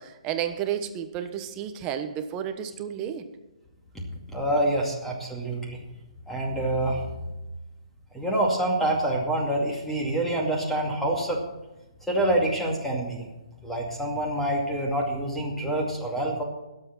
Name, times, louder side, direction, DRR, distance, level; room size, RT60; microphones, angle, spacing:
voice 1, 0.0-3.3, right 9 dB, 25° right, 8 dB, 1.2 m, -31 dB
voice 2, 4.3-5.8 6.3-7.2 8.1-11.4 12.1-13.3 13.6-16.4, right 1 dB, 5° left, -1 dB, 2.3 m, -26 dB
21.0 x 7.9 x 4.4 m, 1.0 s
hypercardioid pair, 150°, 3 cm